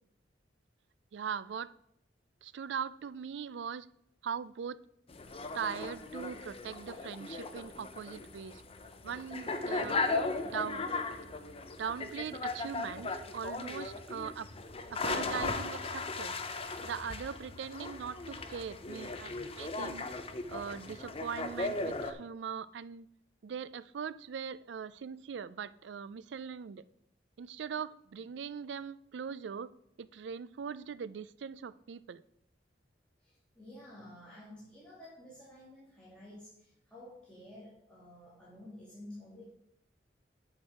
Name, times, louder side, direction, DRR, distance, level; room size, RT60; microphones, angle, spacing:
voice 1, 1.1-1.7 2.4-3.9 4.2-4.8 5.5-8.6 9.0-10.1 10.5-10.9 11.8-14.5 14.9-16.4 16.8-20.1 20.5-23.1 23.4-26.8 27.4-29.7 30.0-32.2, right 7 dB, 70° right, 17 dB, 0.4 m, -40 dB
sound 1, 5.1-22.1, left 3 dB, 35° left, 0.7 m, -37 dB
voice 2, 33.2-39.4, left 1 dB, 5° left, -9 dB, 2.4 m, -51 dB
8.6 x 6.2 x 4.9 m, 0.75 s
head